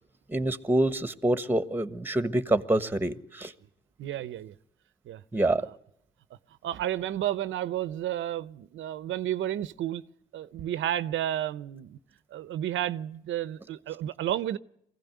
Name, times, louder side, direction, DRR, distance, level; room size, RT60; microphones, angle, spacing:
voice 1, 0.3-3.5 5.3-5.6, right 1 dB, 10° right, 1.3 m, -26 dB
voice 2, 4.0-4.5 5.1-5.2 5.6-5.7 6.6-10.0 10.3-12.0 12.3-14.6, right 12 dB, 75° right, 0.8 m, -31 dB
23.0 x 16.0 x 9.4 m
cardioid pair, 90°, 20 cm